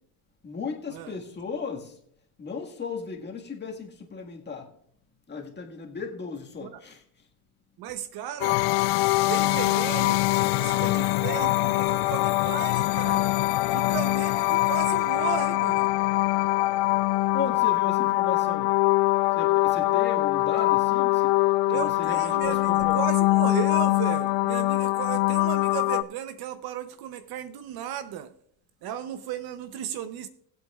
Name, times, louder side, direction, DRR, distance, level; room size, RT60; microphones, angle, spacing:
voice 1, 0.4-2.0 2.4-4.7 5.3-7.0 17.3-18.7 19.3-23.0, left 5 dB, 20° left, 1 dB, 1.7 m, -35 dB
voice 2, 7.8-8.6 9.3-13.4 13.7-16.0 21.6-28.3 28.8-30.3, right 9 dB, 50° right, 12 dB, 0.7 m, -35 dB
sound 1, 8.4-26.0, left 20 dB, 60° left, 0.6 m, -23 dB
19.5 x 7.9 x 2.4 m, 0.65 s
supercardioid pair, 120°, 47 cm